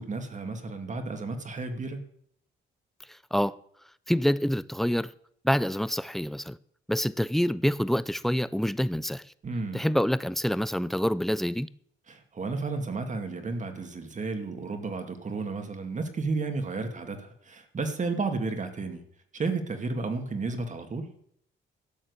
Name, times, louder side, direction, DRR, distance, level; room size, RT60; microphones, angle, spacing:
voice 1, 0.0-2.0 9.4-9.9 12.1-19.0 19.3-21.1, right 3 dB, 40° right, 2.3 m, -32 dB
voice 2, 4.1-5.1 5.4-6.6 6.9-9.2 9.7-11.7, equal, ahead, 0.6 m, -26 dB
12.5 x 7.4 x 8.3 m
cardioid pair, 90°, 20 cm